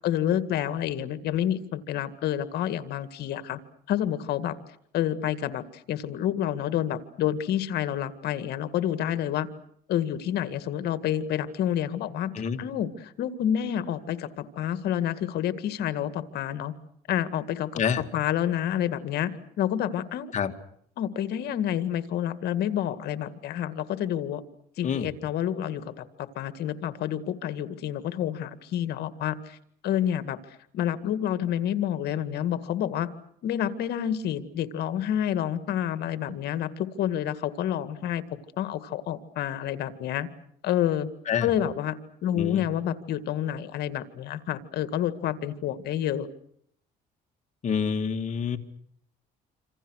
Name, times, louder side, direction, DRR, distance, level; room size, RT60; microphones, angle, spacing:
voice 1, 0.0-3.6 3.9-4.6 4.9-9.5 9.9-16.7 17.1-17.8 18.1-19.3 19.6-20.3 21.0-24.4 24.8-29.6 29.8-30.4 30.7-33.1 33.4-38.2 38.6-40.3 40.6-41.1 41.4-42.0 42.2-46.3, left 10 dB, 75° left, 12 dB, 2.0 m, -28 dB
voice 2, 47.6-48.6, left 7 dB, 45° left, 7 dB, 2.3 m, -27 dB
27.0 x 27.0 x 6.4 m, 0.67 s
cardioid pair, 110°, 17 cm